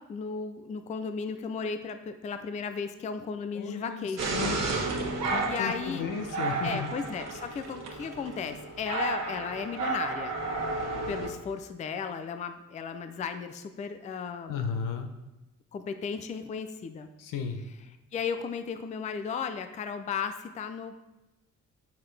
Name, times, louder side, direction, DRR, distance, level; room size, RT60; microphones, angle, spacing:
voice 1, 0.0-4.5 5.4-6.1 6.6-10.4 11.1-14.6 15.7-17.1 18.1-21.0, left 6 dB, 25° left, 8 dB, 0.3 m, -35 dB
voice 2, 3.5-4.6 5.2-6.9 14.5-15.1 17.2-17.6, left 6 dB, 85° left, 7 dB, 0.9 m, -34 dB
sound 1, 4.2-11.3, right 3 dB, 55° right, 1.3 m, -32 dB
9.1 x 5.7 x 3.3 m, 1.0 s
cardioid pair, 170°, 31 cm